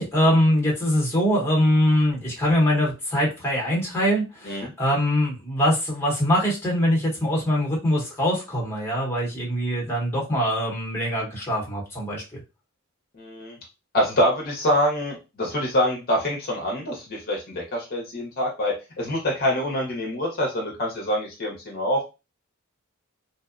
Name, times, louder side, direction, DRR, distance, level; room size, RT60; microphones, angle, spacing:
voice 1, 0.0-12.4, equal, 10° left, -3 dB, 0.8 m, -23 dB
voice 2, 13.2-13.6 13.9-22.0, equal, 45° left, -1 dB, 0.6 m, -25 dB
2.6 x 2.0 x 2.4 m, 0.28 s
head